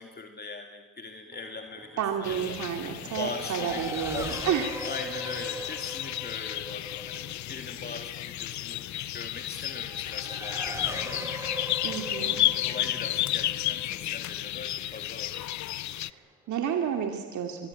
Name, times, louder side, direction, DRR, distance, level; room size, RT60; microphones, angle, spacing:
voice 1, 0.0-2.8 3.2-4.4 4.8-11.8 12.2-15.4, left 4 dB, 35° left, 4 dB, 2.4 m, -41 dB
Race car auto racing / Accelerating revving vroom, 1.3-15.4, equal, 10° right, 4.0 m, -41 dB
voice 2, 2.0-4.7 11.8-12.4 15.9-17.7, right 8 dB, 75° right, 4 dB, 2.5 m, -31 dB
sound 1, 2.2-16.1, left 14 dB, 70° left, 0.7 m, -32 dB
23.5 x 22.0 x 8.9 m, 1.4 s
cardioid pair, 90°, 30 cm